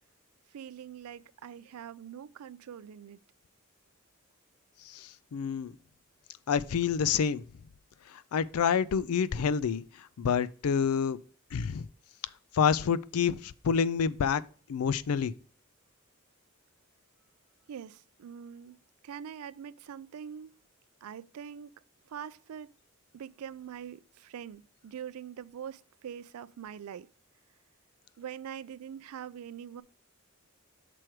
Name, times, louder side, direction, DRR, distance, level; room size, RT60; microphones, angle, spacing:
voice 1, 0.5-3.2 17.7-18.8 19.0-20.5 21.0-21.7 22.1-22.7 23.1-27.1 28.2-29.8, right 8 dB, 90° right, 0.4 m, -43 dB
voice 2, 4.9-5.7 6.5-7.4 8.3-9.8 10.2-11.2 11.5-11.9 12.5-14.4 14.7-15.3, left 7 dB, 90° left, 0.4 m, -28 dB
6.1 x 4.5 x 4.7 m
head